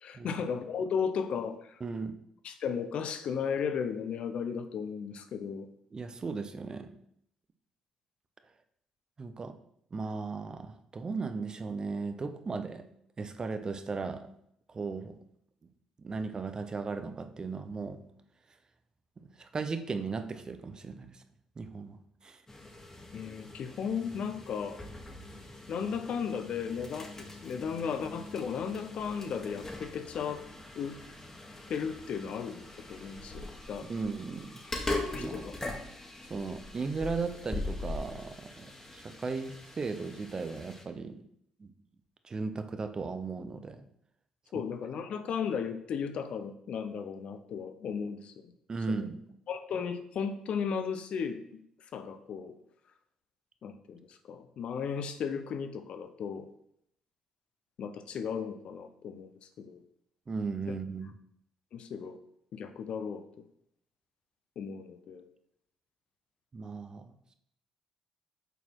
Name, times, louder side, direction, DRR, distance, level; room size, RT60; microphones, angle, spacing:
voice 1, 0.0-1.8 2.4-5.7 23.1-24.8 25.7-30.4 30.8-31.0 31.7-32.6 32.9-33.9 35.1-35.5 44.5-48.5 48.9-49.1 49.5-51.6 51.9-52.5 53.6-56.5 57.8-59.3 59.6-59.8 61.7-62.2 62.5-63.2 64.6-65.3, left 6 dB, 65° left, 9 dB, 0.7 m, -35 dB
voice 2, 1.8-2.1 5.9-6.9 9.2-9.5 9.9-12.8 13.2-14.3 14.7-15.1 16.0-18.0 19.4-21.2 21.6-22.0 22.2-22.4 33.9-34.6 35.1-35.4 36.3-41.2 41.6-41.7 42.2-43.8 48.7-49.2 60.3-61.1 66.5-67.1, right 4 dB, 35° right, 9 dB, 0.8 m, -36 dB
sound 1, 22.5-40.8, left 2 dB, 20° left, 1.5 m, -42 dB
6.9 x 4.2 x 4.5 m, 0.72 s
supercardioid pair, 55°, 2 cm